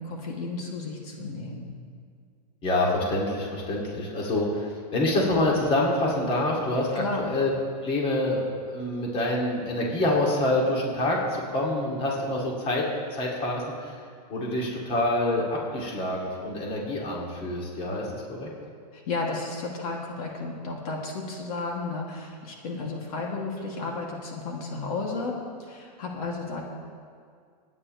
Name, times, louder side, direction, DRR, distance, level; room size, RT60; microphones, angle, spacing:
voice 1, 0.0-1.7 7.0-7.3 18.9-26.6, left 3 dB, 60° left, -1 dB, 2.5 m, -33 dB
voice 2, 2.6-7.5 7.8-12.9 13.1-14.0 14.3-18.5, left 1 dB, 25° left, -2 dB, 2.5 m, -26 dB
25.5 x 9.8 x 3.2 m, 2.2 s
supercardioid pair, 145°, 21 cm